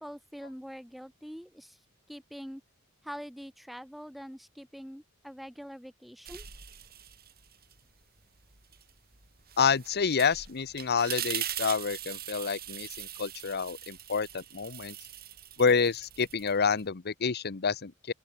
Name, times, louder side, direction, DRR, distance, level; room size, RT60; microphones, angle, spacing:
voice 1, 0.0-1.8 2.1-2.6 3.0-6.5, equal, ahead, 6.9 m, -44 dB
sound 1, 6.2-7.8 8.2-16.9, right 11 dB, 45° right, 7.7 m, -41 dB
voice 2, 9.6-14.9 15.6-18.1, left 5 dB, 50° left, 0.8 m, -28 dB
open air
head